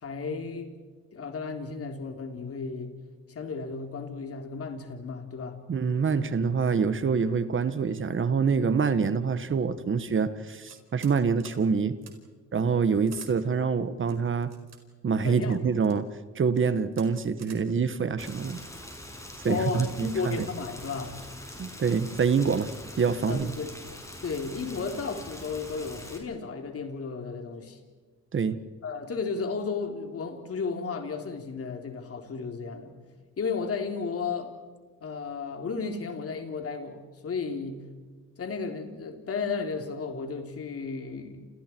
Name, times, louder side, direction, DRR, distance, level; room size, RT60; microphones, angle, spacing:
voice 1, 0.0-0.7 1.1-2.9 3.3-5.6 15.2-15.6 19.5-21.2 23.3-23.8 24.2-27.8 28.8-32.9 33.4-34.5 35.0-37.8 38.4-41.5, left 5 dB, 50° left, 3.6 m, -33 dB
voice 2, 5.7-12.0 12.5-14.5 15.0-16.1 16.3-18.6 19.4-20.5 21.6-22.7 23.0-23.5 28.3-28.6, right 5 dB, 40° right, 1.5 m, -26 dB
sound 1, 10.6-11.1 11.4-11.6 12.0-12.1 13.1-13.3 14.1-14.8 15.5-16.0 16.5-16.6 16.9-17.1 17.4-17.6, right 7 dB, 60° right, 4.5 m, -49 dB
Rain, 18.2-26.2, left 1 dB, 10° left, 6.2 m, -43 dB
29.5 x 28.5 x 4.6 m
cardioid pair, 90°, 30 cm